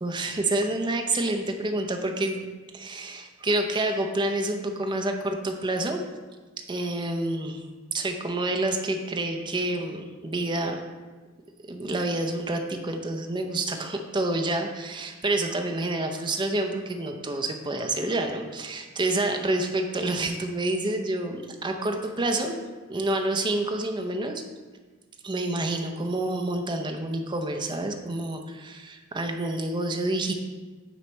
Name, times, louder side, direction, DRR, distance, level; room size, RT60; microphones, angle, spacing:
voice 1, 0.0-2.5 2.7-6.0 6.7-7.6 7.9-10.8 11.7-22.6 22.9-24.4 25.2-30.3, right 2 dB, 25° right, 4 dB, 0.6 m, -28 dB
9.0 x 3.2 x 4.5 m, 1.3 s
head